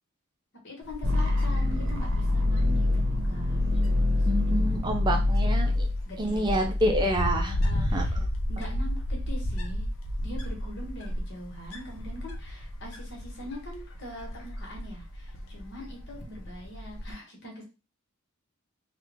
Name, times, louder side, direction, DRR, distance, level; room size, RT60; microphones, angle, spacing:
voice 1, 0.6-5.5 6.1-6.7 7.4-8.2 8.5-9.9 10.2-17.6, left 1 dB, 55° left, -1 dB, 1.4 m, -43 dB
Wind, 0.8-17.1, equal, 85° left, 0.7 m, -33 dB
sound 1, 1.0-7.0, left 2 dB, 70° right, 0.9 m, -26 dB
voice 2, 4.3-5.9 6.2-7.6 7.9-8.0, right 1 dB, 20° right, 3 dB, 0.5 m, -27 dB
3.0 x 2.4 x 3.5 m, 0.30 s
head